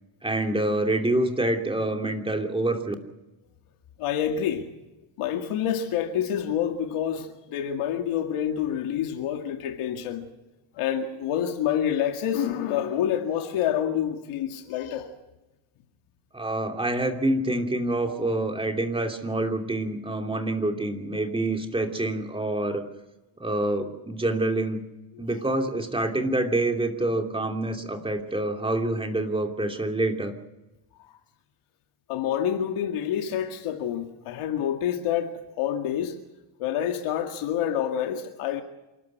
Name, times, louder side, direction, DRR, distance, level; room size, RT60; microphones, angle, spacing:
voice 1, 0.2-2.9 16.3-22.8 23.4-24.8 25.2-30.3, right 2 dB, 10° right, 2.9 m, -26 dB
voice 2, 4.0-4.7 5.2-10.2 10.7-15.2 18.0-18.3 31.0-31.1 32.1-36.2 36.6-38.6, left 9 dB, 80° left, 2.2 m, -28 dB
27.5 x 12.5 x 9.4 m
cardioid pair, 120°, 49 cm